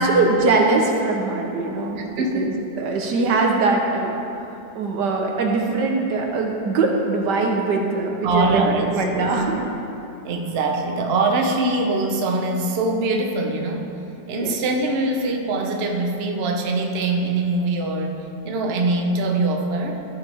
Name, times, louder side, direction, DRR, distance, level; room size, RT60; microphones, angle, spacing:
voice 1, 0.0-9.7 14.4-14.6, right 3 dB, 85° right, 1 dB, 1.6 m, -22 dB
voice 2, 2.0-2.5 8.2-9.3 10.2-13.9 14.3-20.0, right 2 dB, 45° right, 2 dB, 0.9 m, -23 dB
14.0 x 5.0 x 4.4 m, 2.7 s
omnidirectional pair, 1.8 m